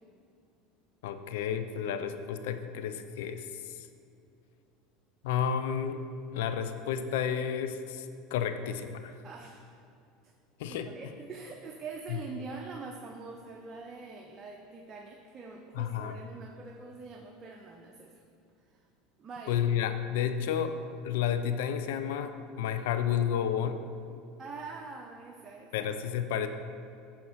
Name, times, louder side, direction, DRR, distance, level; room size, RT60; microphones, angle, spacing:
voice 1, 1.0-3.9 5.2-6.0 6.3-9.1 10.6-11.1 12.1-12.2 15.7-16.2 19.5-20.8 21.0-23.8 25.7-26.5, left 8 dB, 75° left, 9 dB, 0.5 m, -31 dB
voice 2, 9.2-9.8 10.2-10.3 10.7-18.1 18.7-18.8 19.2-19.6 24.4-25.9, right 4 dB, 35° right, 2 dB, 0.8 m, -44 dB
9.4 x 4.4 x 6.3 m, 2.5 s
hypercardioid pair, 85°, 0 cm